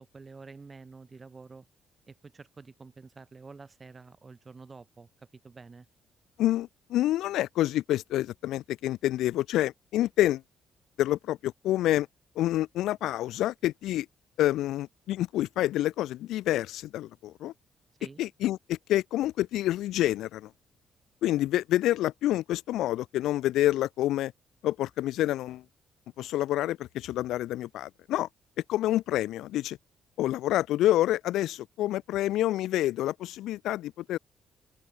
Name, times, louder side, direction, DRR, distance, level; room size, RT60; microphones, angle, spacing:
voice 1, 0.0-1.7 2.1-5.1 5.4-5.9 18.0-18.2, right 4 dB, 30° right, 5.1 m, -48 dB
voice 2, 6.4-10.4 11.0-12.1 12.4-14.1 14.4-17.5 18.2-20.5 21.2-24.3 24.6-25.6 26.2-28.3 28.7-29.8 30.2-34.2, left 14 dB, 85° left, 0.9 m, -28 dB
open air
cardioid pair, 90°, 0 cm